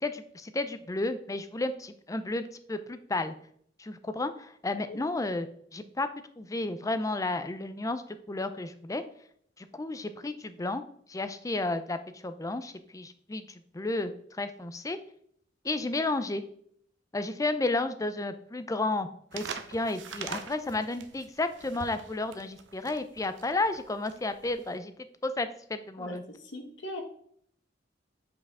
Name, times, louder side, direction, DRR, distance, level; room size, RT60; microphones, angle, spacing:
voice 1, 0.0-3.3 3.8-5.5 5.7-6.1 6.4-9.0 9.6-10.8 11.1-15.0 15.6-16.4 17.1-24.9 25.2-26.2, left 2 dB, 20° left, 11 dB, 0.4 m, -32 dB
sound 1, 19.3-24.8, right 6 dB, 75° right, 0.6 m, -43 dB
voice 2, 26.0-27.0, left 1 dB, 70° left, 4 dB, 1.3 m, -40 dB
8.0 x 4.8 x 3.6 m, 0.65 s
head